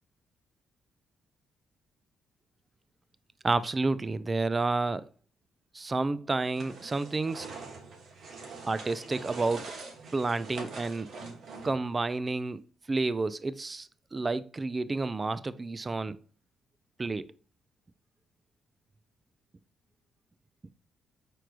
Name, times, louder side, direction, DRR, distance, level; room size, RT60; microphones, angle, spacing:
voice 1, 3.4-5.1 5.7-7.5 8.6-9.7 10.1-11.1 11.6-16.2 17.0-17.3, right 3 dB, 25° right, 0.4 m, -30 dB
sound 1, 6.5-11.9, right 4 dB, 65° right, 1.3 m, -44 dB
4.6 x 4.6 x 2.4 m
cardioid pair, 90°, 0 cm